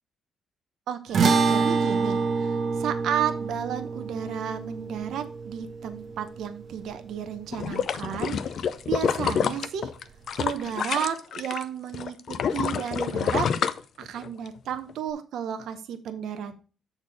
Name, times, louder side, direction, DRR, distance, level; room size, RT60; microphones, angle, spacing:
voice 1, 0.9-9.9 10.3-12.1 12.5-13.5 14.0-16.6, right 9 dB, 75° right, 9 dB, 0.7 m, -32 dB
sound 1, 1.1-7.7, right 4 dB, 55° right, 1.1 m, -27 dB
sound 2, 7.5-11.6 11.9-14.5 14.9-15.0, left 7 dB, 60° left, 0.5 m, -27 dB
7.0 x 4.2 x 4.7 m, 0.36 s
cardioid pair, 90°, 0 cm